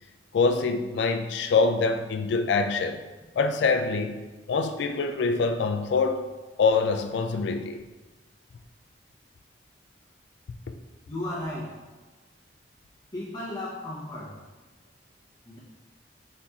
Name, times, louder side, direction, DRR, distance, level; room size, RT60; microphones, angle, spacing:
voice 1, 0.3-3.0 3.4-6.2 6.6-7.8, left 4 dB, 75° left, 7 dB, 0.3 m, -25 dB
voice 2, 11.1-11.7 13.1-14.3 15.4-15.6, left 1 dB, 20° left, -7 dB, 0.8 m, -34 dB
4.3 x 4.0 x 2.3 m, 1.2 s
head